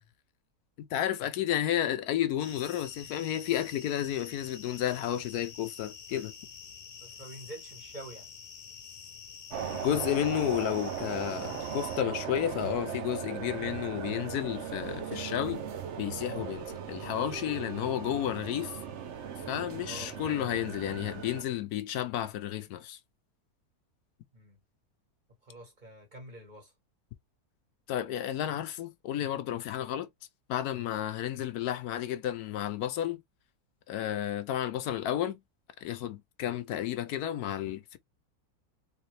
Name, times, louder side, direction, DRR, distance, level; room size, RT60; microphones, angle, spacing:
voice 1, 0.8-6.3 9.7-15.6 16.0-18.8 19.5-23.0 27.9-30.1 30.5-33.2 33.9-35.4 35.8-38.0, left 11 dB, 80° left, 1.2 m, -32 dB
sound 1, 2.4-12.0, left 6 dB, 55° left, 0.9 m, -48 dB
voice 2, 7.0-8.3 19.8-20.6 24.3-24.6 25.4-26.7, right 1 dB, 30° right, 1.7 m, -47 dB
sound 2, 9.5-21.4, right 8 dB, 55° right, 1.0 m, -38 dB
3.4 x 3.3 x 3.2 m
omnidirectional pair, 1.6 m